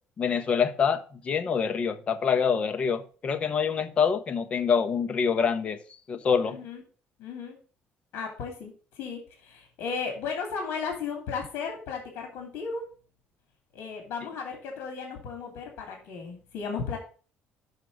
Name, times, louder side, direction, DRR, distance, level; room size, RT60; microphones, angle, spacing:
voice 1, 0.2-5.8 6.1-6.6, left 6 dB, 30° left, 0.8 m, -26 dB
voice 2, 6.5-6.8 7.2-7.6 8.1-12.9 13.7-17.0, left 5 dB, 65° left, 2.7 m, -35 dB
6.5 x 6.1 x 6.3 m
cardioid pair, 160°, 4 cm